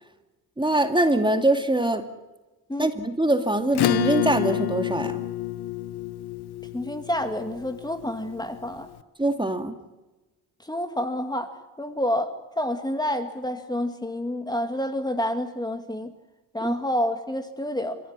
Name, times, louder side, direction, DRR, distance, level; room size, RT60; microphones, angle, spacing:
voice 1, 0.6-2.1 2.8-5.2 9.2-9.7 16.6-16.7, right 1 dB, 10° right, 7 dB, 2.4 m, -23 dB
Acoustic guitar / Strum, 3.7-8.7, left 13 dB, 85° left, 1.2 m, -28 dB
voice 2, 6.7-8.9 10.7-16.1 16.5-18.0, left 1 dB, 10° left, 8 dB, 2.2 m, -28 dB
29.5 x 15.0 x 9.7 m, 1.1 s
cardioid pair, 85°, 38 cm